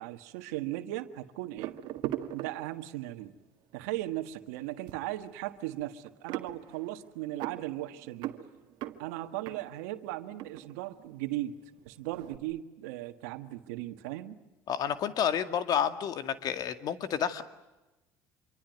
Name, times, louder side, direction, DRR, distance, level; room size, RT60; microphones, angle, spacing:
voice 1, 0.0-1.7 2.3-3.3 3.7-8.3 9.0-11.6 11.9-14.4, right 15 dB, 85° right, 9 dB, 1.7 m, -37 dB
sound 1, 1.6-3.2 3.8-4.0 4.3-11.5 11.7-12.4, right 13 dB, 70° right, 1.8 m, -40 dB
voice 2, 14.7-17.4, left 8 dB, 55° left, 10 dB, 2.1 m, -30 dB
26.5 x 24.0 x 9.3 m, 1.0 s
supercardioid pair, 90°, 8 cm